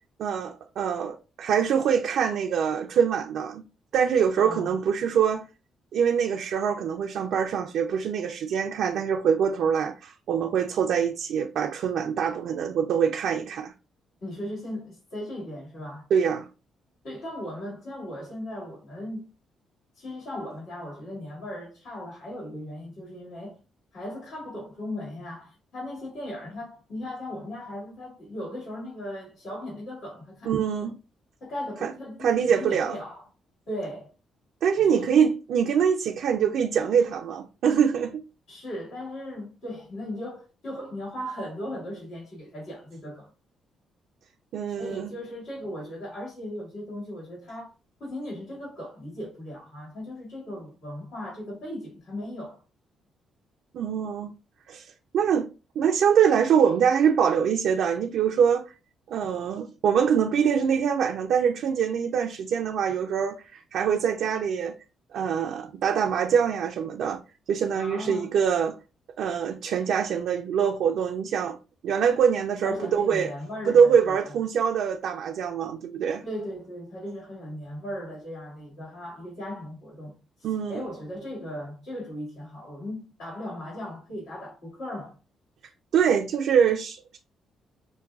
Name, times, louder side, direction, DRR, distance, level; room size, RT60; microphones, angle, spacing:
voice 1, 0.2-3.6 3.9-5.4 5.9-13.7 16.1-16.5 30.5-31.0 31.8-31.9 32.2-33.0 34.6-38.2 44.5-45.1 53.7-54.3 54.7-55.5 55.8-58.7 59.1-64.8 65.1-67.2 67.5-68.8 69.2-71.6 71.8-73.3 73.7-76.2 80.4-80.8 85.9-87.2, right 7 dB, 75° right, 0.4 m, -24 dB
voice 2, 4.4-4.8 14.2-16.1 17.0-19.3 20.0-23.6 23.9-30.5 30.8-30.9 31.4-33.3 33.7-34.1 34.8-35.2 38.5-43.3 44.7-47.7 48.0-52.6 67.7-68.3 72.6-74.3 76.2-85.2, left 1 dB, 80° left, 2.3 m, -37 dB
5.7 x 2.3 x 2.4 m
cardioid pair, 90°, 0 cm